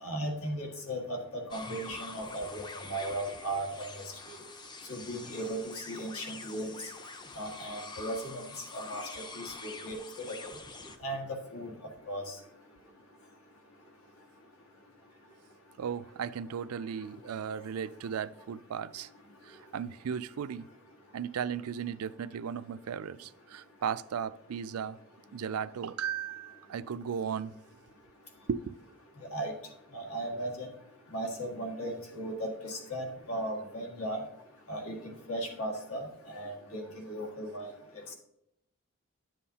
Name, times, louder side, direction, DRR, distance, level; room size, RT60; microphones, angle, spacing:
voice 1, 0.0-2.6 2.9-3.9 4.3-4.4 4.9-6.7 7.4-8.4 8.7-9.0 9.4-10.5 11.0-11.3 11.5-11.7 12.1-12.2 29.3-29.5 29.9-30.7 31.1-34.2 34.7-37.7, right 1 dB, 80° left, 1.8 m, -36 dB
sound 1, 1.5-11.0, left 3 dB, 20° left, 0.5 m, -45 dB
voice 2, 15.8-19.1 19.4-20.6 21.1-25.0 25.3-27.5 28.5-28.8, right 7 dB, 85° right, 0.4 m, -36 dB
10.5 x 7.4 x 2.8 m
head